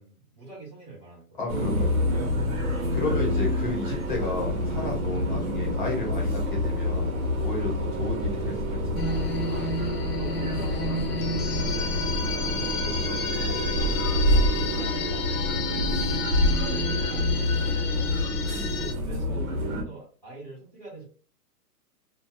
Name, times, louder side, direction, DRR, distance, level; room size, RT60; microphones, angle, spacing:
voice 1, 0.0-1.4 5.1-5.3 10.2-12.0 12.4-14.2 14.4-15.2 15.6-18.1 18.7-21.0, right 3 dB, 20° right, -15 dB, 0.5 m, -44 dB
voice 2, 1.4-1.9 2.9-7.1 7.4-9.0 12.2-12.3 18.3-18.8, left 3 dB, 30° left, 0 dB, 0.6 m, -33 dB
sound 1, 1.5-19.8, left 1 dB, 60° right, 0.9 m, -27 dB
sound 2, 9.0-18.9, left 3 dB, 75° left, 0.7 m, -31 dB
2.5 x 2.2 x 2.5 m, 0.42 s
hypercardioid pair, 175°, 47 cm